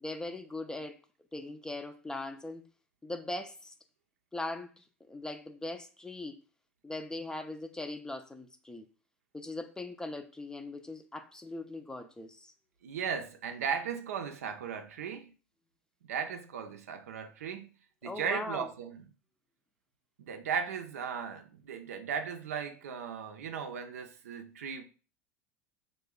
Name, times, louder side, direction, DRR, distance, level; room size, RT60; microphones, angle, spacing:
voice 1, 0.0-1.0 1.3-2.6 3.0-3.7 4.3-6.4 6.8-8.9 9.3-12.5 18.0-18.7, left 2 dB, 10° left, 0.4 m, -40 dB
voice 2, 12.8-15.3 16.0-17.7 18.0-19.0 20.2-24.8, right 7 dB, 80° right, 0.5 m, -36 dB
3.2 x 2.2 x 3.6 m
hypercardioid pair, 85°, 8 cm